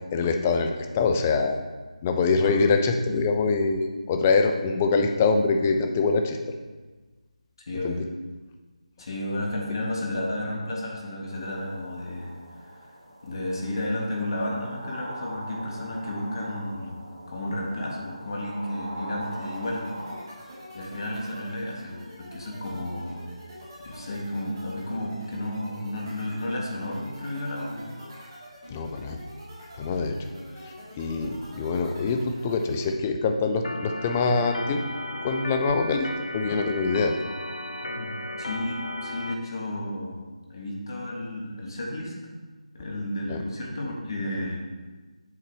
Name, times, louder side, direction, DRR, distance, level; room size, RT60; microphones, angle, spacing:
voice 1, 0.1-1.6 2.0-6.4 7.8-8.0 28.7-29.2 29.8-30.2 30.6-34.8 35.2-37.2 43.3-43.4, left 4 dB, 15° left, 5 dB, 0.4 m, -24 dB
voice 2, 7.7-8.0 9.0-12.3 12.8-12.9 13.2-19.8 20.7-23.3 23.8-27.9 37.8-38.1 38.4-40.2 40.5-42.1 42.7-44.7, left 1 dB, 40° left, -1 dB, 1.5 m, -32 dB
sound 1, 11.3-20.2, right 1 dB, 60° right, 1.8 m, -41 dB
sound 2, 19.2-32.9, equal, 30° right, 2.4 m, -46 dB
Organ, 33.6-39.4, left 1 dB, 65° left, 0.7 m, -35 dB
7.6 x 5.7 x 3.4 m, 1.3 s
figure-of-eight pair, 160°, 4 cm